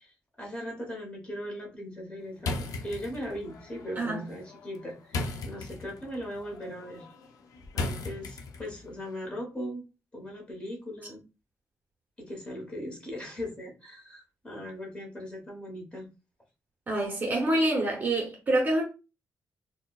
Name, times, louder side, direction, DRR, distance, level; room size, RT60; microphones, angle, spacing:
voice 1, 0.0-2.5 2.8-7.1 7.7-9.8 10.1-11.2 12.2-16.1, equal, 15° left, 1.0 m, -39 dB
sound 1, 2.4-8.9, left 3 dB, 65° left, 0.4 m, -37 dB
voice 2, 16.9-18.8, right 1 dB, 30° right, 0.6 m, -26 dB
4.2 x 2.0 x 2.3 m
wide cardioid pair, 175°, 6 cm